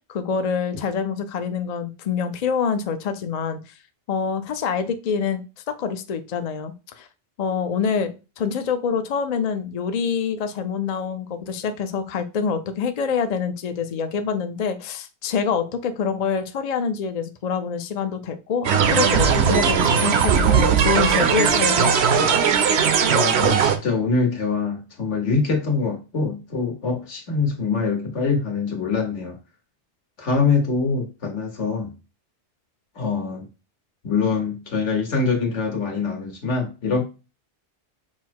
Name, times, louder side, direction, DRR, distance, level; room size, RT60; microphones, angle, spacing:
voice 1, 0.1-3.6 4.1-5.4 5.8-7.1 7.4-22.4, left 6 dB, 50° left, 8 dB, 0.5 m, -26 dB
sound 1, 18.6-23.8, right 6 dB, 70° right, 0.9 m, -18 dB
voice 2, 23.1-29.4 30.2-31.9 32.9-33.5 34.0-37.0, left 4 dB, 80° left, 2 dB, 1.5 m, -24 dB
5.5 x 2.1 x 4.6 m, 0.30 s
omnidirectional pair, 1.2 m